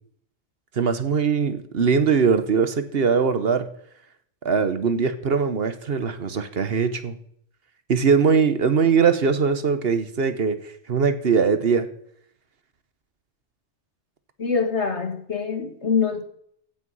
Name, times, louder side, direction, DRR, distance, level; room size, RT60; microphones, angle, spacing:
voice 1, 0.8-3.7 4.4-7.2 7.9-11.9, right 6 dB, 60° right, 11 dB, 1.3 m, -21 dB
voice 2, 14.4-16.2, left 5 dB, 75° left, 4 dB, 2.5 m, -24 dB
15.5 x 9.2 x 5.5 m, 0.66 s
omnidirectional pair, 1.2 m